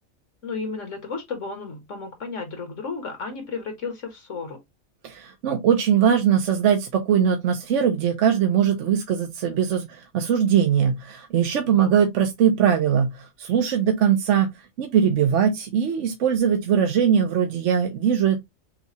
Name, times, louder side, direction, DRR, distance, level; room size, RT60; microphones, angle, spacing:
voice 1, 0.4-4.6 11.7-11.9, left 4 dB, 65° left, 1.7 m, -33 dB
voice 2, 5.0-14.5 14.8-18.4, right 8 dB, 65° right, 1.0 m, -21 dB
6.2 x 2.3 x 2.7 m
omnidirectional pair, 1.4 m